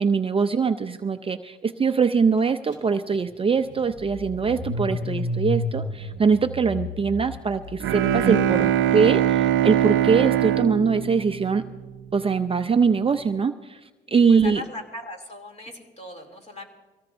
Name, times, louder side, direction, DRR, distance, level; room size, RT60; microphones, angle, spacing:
voice 1, 0.0-11.6 12.1-13.8 14.1-14.6, right 5 dB, 30° right, 8 dB, 0.5 m, -22 dB
Car / Engine starting, 2.7-2.8 3.1-8.3, left 1 dB, 80° left, 4.4 m, -32 dB
Bowed string instrument, 7.8-12.1, right 10 dB, 75° right, 0.6 m, -22 dB
voice 2, 8.4-8.8 14.1-16.7, left 1 dB, 35° left, 2 dB, 2.9 m, -39 dB
23.0 x 16.5 x 2.6 m, 1.2 s
cardioid pair, 90°, 20 cm